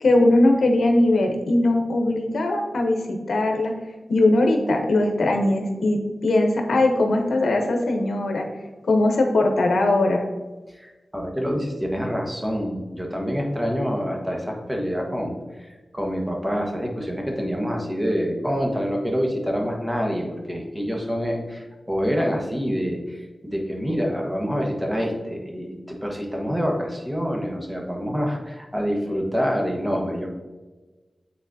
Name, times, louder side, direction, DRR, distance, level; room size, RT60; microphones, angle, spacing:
voice 1, 0.0-3.7 4.1-8.4 8.8-10.2, left 2 dB, 90° left, 2 dB, 0.9 m, -20 dB
voice 2, 10.7-30.3, equal, 10° right, 0 dB, 1.4 m, -26 dB
8.9 x 4.0 x 2.7 m, 1.2 s
wide cardioid pair, 65°, 0 cm